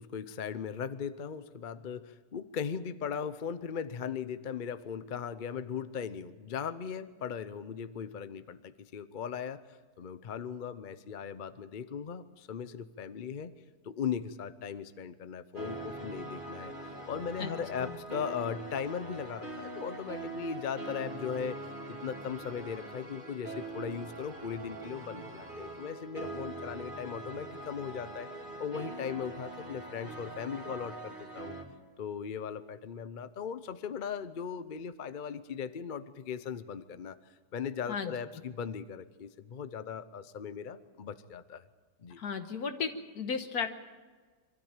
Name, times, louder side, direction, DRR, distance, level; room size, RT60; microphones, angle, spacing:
voice 1, 0.0-9.6 10.0-13.5 13.8-21.6 21.9-28.3 28.6-31.6 32.0-37.2 37.5-41.6 42.0-42.2, left 7 dB, 45° left, 12 dB, 0.7 m, -38 dB
sound 1, 15.5-31.6, right 2 dB, 30° right, 2.5 m, -43 dB
voice 2, 42.2-42.9 43.2-43.7, left 6 dB, 70° left, 7 dB, 1.8 m, -34 dB
24.5 x 13.5 x 8.9 m, 1.4 s
omnidirectional pair, 1.7 m